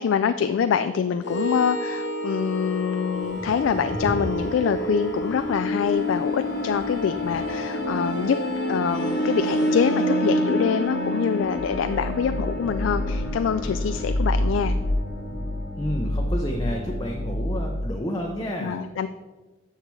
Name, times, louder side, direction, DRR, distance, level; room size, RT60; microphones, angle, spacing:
voice 1, 0.0-8.4 8.7-14.7 18.6-19.1, left 7 dB, 75° left, 11 dB, 0.3 m, -25 dB
sound 1, 1.2-17.8, equal, 55° left, 1.0 m, -27 dB
Thunder, 3.1-9.9, equal, 45° right, 2.1 m, -40 dB
voice 2, 15.8-18.8, equal, 20° left, 0 dB, 0.6 m, -30 dB
10.0 x 6.6 x 3.2 m, 1.2 s
head